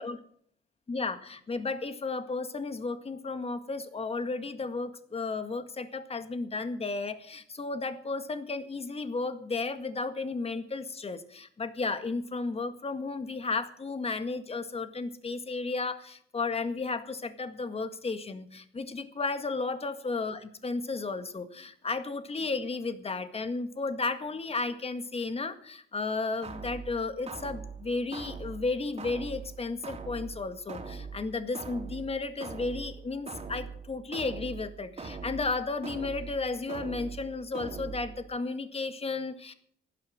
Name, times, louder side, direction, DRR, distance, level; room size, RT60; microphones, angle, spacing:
voice 1, 0.9-39.5, left 3 dB, 30° left, 10 dB, 1.9 m, -33 dB
sound 1, 26.4-38.4, right 4 dB, 30° right, 3.3 m, -42 dB
15.5 x 12.0 x 6.5 m, 0.62 s
cardioid pair, 90°, 20 cm